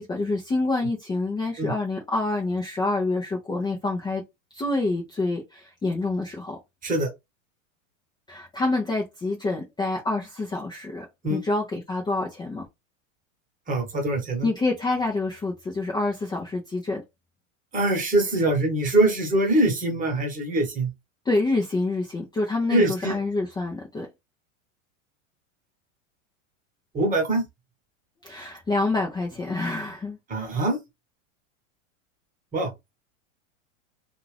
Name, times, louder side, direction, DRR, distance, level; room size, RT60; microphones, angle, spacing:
voice 1, 0.0-4.2 4.5-6.6 8.3-12.7 14.4-17.0 21.2-24.1 28.2-30.2, left 2 dB, 10° left, 0.5 m, -27 dB
voice 2, 13.7-14.5 17.7-20.9 22.7-23.2 26.9-27.4 30.3-30.8 32.5-32.7, right 2 dB, 20° right, 1.1 m, -23 dB
2.5 x 2.5 x 3.3 m
hypercardioid pair, 120°, 40 cm